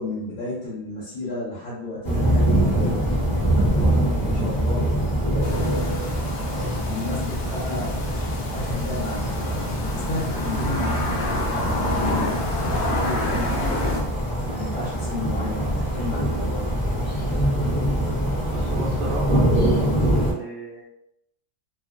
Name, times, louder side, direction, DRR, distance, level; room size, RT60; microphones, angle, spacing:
voice 1, 0.0-4.9 5.3-6.1 6.5-14.1 14.4-16.8, left 1 dB, 65° left, -7 dB, 1.5 m, -33 dB
sound 1, 2.0-20.3, right 1 dB, 30° left, 0.8 m, -24 dB
sound 2, 5.4-14.0, left 2 dB, 80° left, 1.3 m, -29 dB
voice 2, 18.4-19.5 20.0-20.9, right 4 dB, 85° right, -3 dB, 0.7 m, -34 dB
3.3 x 2.1 x 2.5 m, 0.79 s
omnidirectional pair, 2.1 m